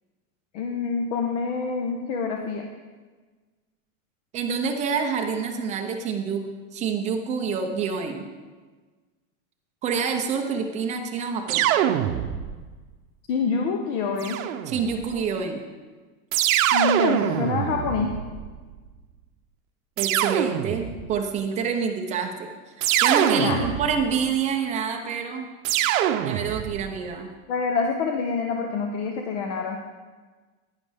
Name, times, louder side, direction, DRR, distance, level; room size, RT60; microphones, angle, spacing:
voice 1, 0.5-2.7 13.3-14.4 16.7-18.1 23.4-23.6 27.5-29.9, left 5 dB, 55° left, 3 dB, 0.9 m, -26 dB
voice 2, 4.3-8.3 9.8-11.7 14.7-15.6 20.0-22.5 22.8-25.5 26.2-27.3, right 6 dB, 15° right, 4 dB, 0.5 m, -27 dB
sound 1, 11.5-12.7 14.2-15.1 16.3-18.6 20.0-21.1 22.8-24.2 25.6-26.9, right 12 dB, 70° right, 0.7 m, -24 dB
10.5 x 10.0 x 3.4 m, 1.4 s
supercardioid pair, 165°, 41 cm